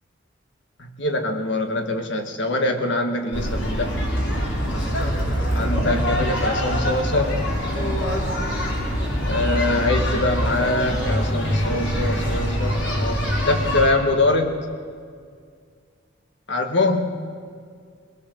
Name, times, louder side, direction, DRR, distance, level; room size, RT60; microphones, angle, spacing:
voice 1, 0.8-4.0 5.5-7.4 9.3-14.7 16.5-17.2, left 2 dB, 65° left, 5 dB, 1.7 m, -23 dB
city park Tel Aviv Israel, 3.3-13.8, equal, 85° left, 4.8 m, -24 dB
21.0 x 20.5 x 6.6 m, 2.1 s
head